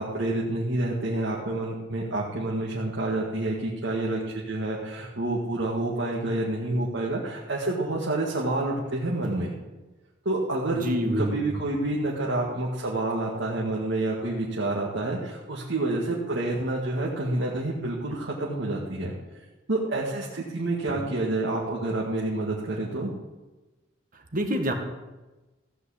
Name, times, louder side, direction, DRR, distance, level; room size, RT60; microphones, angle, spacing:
voice 1, 0.0-9.5 10.3-10.8 11.2-19.1 19.7-23.1, right 2 dB, 65° right, -3 dB, 1.8 m, -28 dB
voice 2, 10.7-11.6 20.9-21.0 24.1-24.7, equal, 45° right, 4 dB, 1.7 m, -27 dB
15.0 x 5.5 x 8.5 m, 1.1 s
head